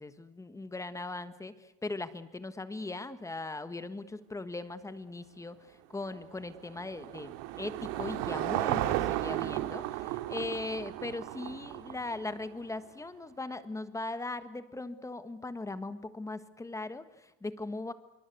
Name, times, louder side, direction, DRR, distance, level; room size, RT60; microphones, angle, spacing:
voice 1, 0.0-17.9, left 2 dB, 10° left, 12 dB, 1.5 m, -39 dB
Car passing by / Engine, 6.1-12.6, right 14 dB, 85° right, 2.2 m, -34 dB
26.0 x 24.0 x 8.0 m, 0.94 s
cardioid pair, 145°, 32 cm